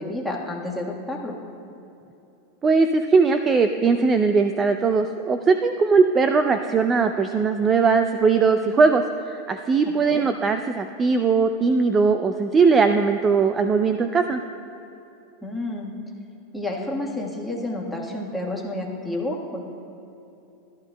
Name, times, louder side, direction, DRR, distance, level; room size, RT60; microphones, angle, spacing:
voice 1, 0.0-1.4 10.0-10.2 15.4-15.9 16.5-19.6, left 1 dB, ahead, -1 dB, 1.4 m, -30 dB
voice 2, 2.6-14.4, right 4 dB, 20° right, 8 dB, 0.3 m, -20 dB
14.0 x 11.5 x 2.2 m, 2.9 s
supercardioid pair, 135°, 0 cm